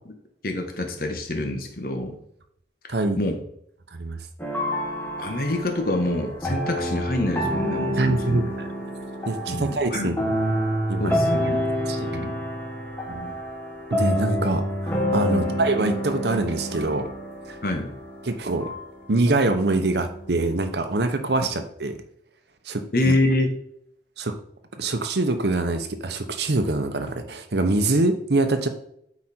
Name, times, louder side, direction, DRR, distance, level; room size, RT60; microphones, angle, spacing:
voice 1, 0.4-2.1 3.2-3.4 5.2-8.5 9.5-10.1 11.0-11.6 12.1-12.4 13.1-13.3 15.3-15.6 17.6-17.9 22.9-23.5, left 1 dB, 55° left, 4 dB, 1.4 m, -26 dB
sound 1, 4.4-20.6, equal, 10° left, 1.4 m, -28 dB
voice 2, 8.0-8.7 9.3-10.2 10.9-11.1 11.9-12.2 13.9-17.1 17.5-17.6 18.2-18.7 19.1-22.0 22.7-23.1 24.2-24.4 24.8-28.7, right 2 dB, 70° right, 8 dB, 0.9 m, -24 dB
8.2 x 4.9 x 4.4 m, 0.71 s
head